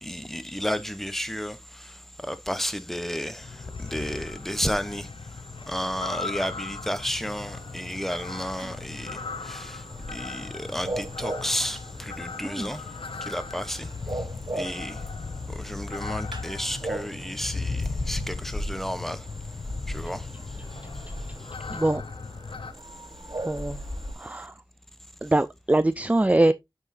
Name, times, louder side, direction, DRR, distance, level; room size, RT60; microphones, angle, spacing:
voice 1, 0.0-5.1 5.7-9.8 10.1-12.8 13.2-13.9 14.5-15.0 15.5-19.2 19.9-20.3, equal, 5° left, 0.9 m, -32 dB
sound 1, 3.4-22.7, left 4 dB, 80° left, 0.7 m, -37 dB
sound 2, 4.9-24.1, left 1 dB, 50° left, 2.5 m, -42 dB
sound 3, 7.2-24.2, right 2 dB, 55° right, 1.3 m, -41 dB
voice 2, 21.7-22.0 23.4-23.8 24.2-24.5 25.2-26.5, right 2 dB, 15° right, 0.4 m, -23 dB
7.9 x 5.9 x 2.7 m
wide cardioid pair, 60°, 9 cm